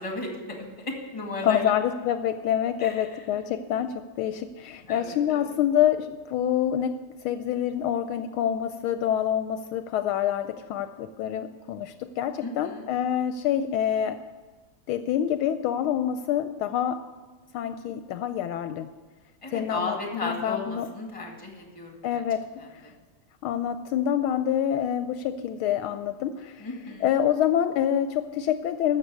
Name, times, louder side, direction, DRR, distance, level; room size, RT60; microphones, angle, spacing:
voice 1, 0.0-1.7 2.8-3.1 4.9-5.4 12.4-12.9 19.4-22.2 22.8-22.9 26.6-27.1, left 2 dB, 15° left, 1 dB, 2.0 m, -35 dB
voice 2, 1.4-7.0 7.2-14.2 14.9-17.0 17.5-18.9 19.5-20.9 22.0-22.5 23.4-26.7 27.0-29.0, left 10 dB, 80° left, 10 dB, 1.4 m, -26 dB
13.5 x 6.8 x 8.2 m, 1.4 s
omnidirectional pair, 2.4 m